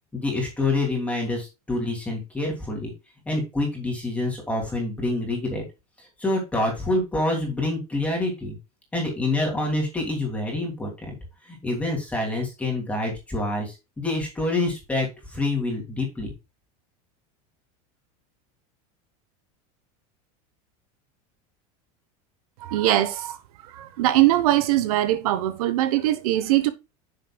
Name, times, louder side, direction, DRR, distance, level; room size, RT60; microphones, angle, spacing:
voice 1, 0.1-2.9 3.3-5.6 6.2-8.6 8.9-11.1 11.5-16.3, left 2 dB, 5° left, 2.8 m, -27 dB
voice 2, 22.6-23.4 23.8-26.7, right 14 dB, 80° right, 1.1 m, -21 dB
9.4 x 6.6 x 2.3 m
supercardioid pair, 150°, 19 cm